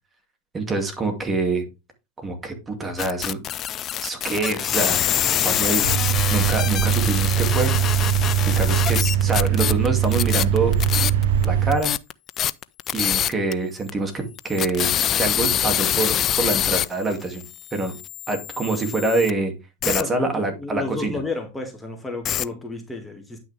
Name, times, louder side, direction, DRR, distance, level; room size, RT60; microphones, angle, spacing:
voice 1, 0.5-1.6 2.2-3.5 4.0-5.9 6.3-7.7 8.5-10.8 11.4-11.9 12.9-17.4 17.7-17.9 18.3-19.5 19.8-21.2, right 3 dB, 20° right, 2.4 m, -25 dB
sound 1, 3.0-11.5 11.7-13.5 13.9-14.0 14.4-19.3 19.8-20.0 22.3-22.5, left 11 dB, 35° left, 0.4 m, -25 dB
sound 2, 5.8-11.7, right 9 dB, 75° right, 1.1 m, -21 dB
voice 2, 19.9-23.4, left 3 dB, 5° left, 2.2 m, -32 dB
10.0 x 6.2 x 3.4 m
hypercardioid pair, 105°, 0 cm